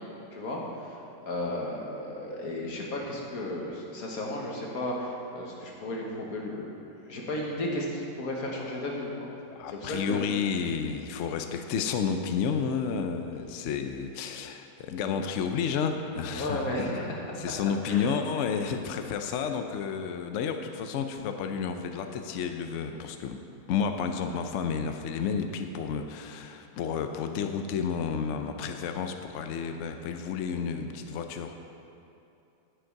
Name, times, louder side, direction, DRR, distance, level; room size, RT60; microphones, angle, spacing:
voice 1, 0.3-1.0 1.2-6.7 7.0-9.1 9.7-10.2 16.3-17.3 17.9-18.1 18.5-18.8, left 1 dB, 55° left, -1 dB, 1.7 m, -34 dB
voice 2, 9.6-16.9 17.4-23.4 23.7-31.5, left 6 dB, 75° left, 6 dB, 0.6 m, -31 dB
10.0 x 7.8 x 4.6 m, 2.7 s
omnidirectional pair, 1.9 m